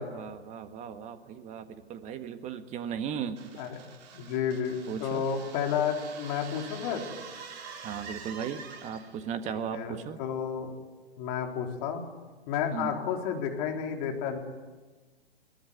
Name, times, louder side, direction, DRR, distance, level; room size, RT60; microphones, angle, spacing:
voice 1, 0.0-3.4 4.9-5.2 7.8-10.2 12.7-13.0, right 7 dB, 20° right, 9 dB, 1.6 m, -36 dB
sound 1, 3.4-9.3, right 6 dB, 40° right, 4.7 m, -46 dB
voice 2, 4.1-7.0 9.4-10.7 11.2-12.0 12.5-14.4, left 7 dB, 35° left, 2 dB, 4.0 m, -31 dB
22.5 x 20.0 x 9.7 m, 1.3 s
figure-of-eight pair, 120°, 33 cm